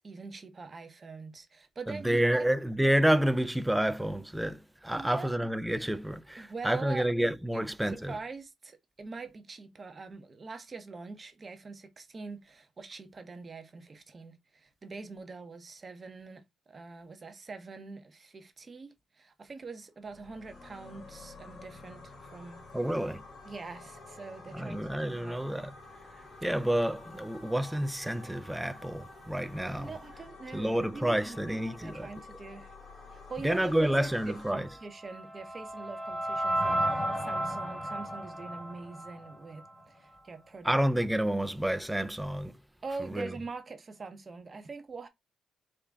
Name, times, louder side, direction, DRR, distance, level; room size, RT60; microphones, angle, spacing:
voice 1, 0.0-2.5 4.9-5.3 6.4-7.1 7.5-22.7 23.4-25.4 29.8-32.7 33.1-40.8 42.8-45.1, right 4 dB, 35° right, 0.8 m, -44 dB
voice 2, 1.9-8.1 22.7-23.2 24.5-25.7 26.4-29.9 30.5-32.1 33.4-34.7 40.6-42.5 43.1-43.3, right 1 dB, 5° right, 0.4 m, -29 dB
sound 1, 20.1-34.5, left 3 dB, 50° left, 2.0 m, -50 dB
sound 2, 34.7-39.8, right 1 dB, 15° left, 0.8 m, -33 dB
3.8 x 2.2 x 3.4 m
cardioid pair, 90°, 0 cm